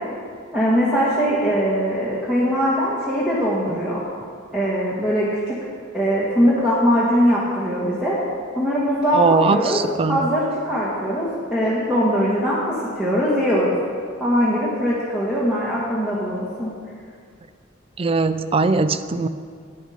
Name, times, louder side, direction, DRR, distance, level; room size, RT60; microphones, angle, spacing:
voice 1, 0.5-4.0 4.5-5.6 5.9-8.2 8.5-9.8 10.1-13.7 14.2-16.7, equal, 5° right, -9 dB, 1.6 m, -21 dB
voice 2, 9.1-10.3 18.0-19.3, right 4 dB, 30° right, 12 dB, 0.4 m, -20 dB
10.5 x 9.4 x 5.0 m, 2.2 s
head